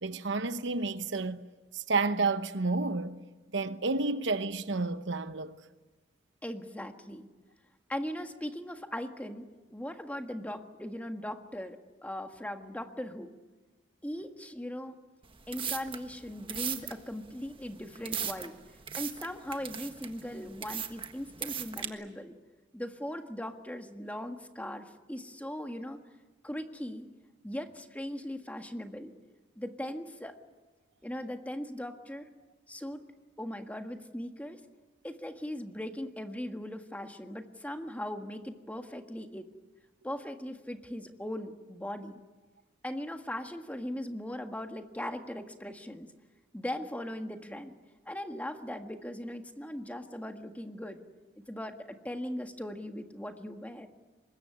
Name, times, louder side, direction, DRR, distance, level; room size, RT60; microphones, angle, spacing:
voice 1, 0.0-1.4 1.7-3.2 3.5-5.6, right 3 dB, 70° right, 1.0 m, -30 dB
voice 2, 6.4-7.3 7.9-11.8 12.0-13.3 14.0-15.0 15.5-18.5 19.0-22.3 22.7-26.0 26.4-27.1 27.4-29.1 29.6-30.4 31.0-32.3 32.7-33.0 33.4-34.6 35.0-39.5 40.0-42.2 42.8-46.1 46.5-47.7 48.0-51.0 51.3-53.9, left 1 dB, 10° left, 1.6 m, -39 dB
sound 1, 15.2-21.9, right 8 dB, 30° right, 1.5 m, -38 dB
24.5 x 21.0 x 9.7 m
head